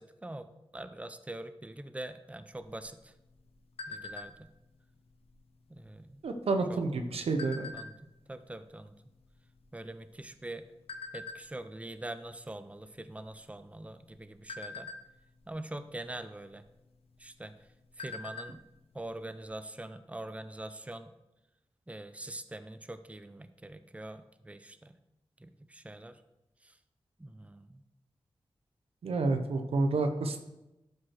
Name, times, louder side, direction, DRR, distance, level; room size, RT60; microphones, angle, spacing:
voice 1, 0.0-3.1 3.9-4.5 5.7-6.2 6.7-6.8 7.2-7.3 7.7-8.9 9.7-10.7 11.1-14.9 15.5-16.6 17.2-17.5 18.0-18.6 18.9-21.1 21.9-25.0 25.4-26.2 26.6-26.7 27.2-27.8, right 1 dB, 15° right, 11 dB, 0.7 m, -44 dB
sound 1, 2.6-4.6 5.1-5.3 5.6-6.0 6.7-8.2 8.8-8.9 9.1-10.4 10.9-11.4 11.9-12.2 12.5-12.7 13.1-13.7 14.1-15.5 16.6-16.7 17.1-17.2 17.6-18.6 18.9-19.0 19.4-19.5, left 4 dB, 85° left, 1.0 m, -43 dB
voice 2, 6.2-7.7 29.0-30.4, right 3 dB, 85° right, 6 dB, 1.0 m, -29 dB
12.0 x 4.7 x 4.7 m, 0.94 s
cardioid pair, 50°, 10 cm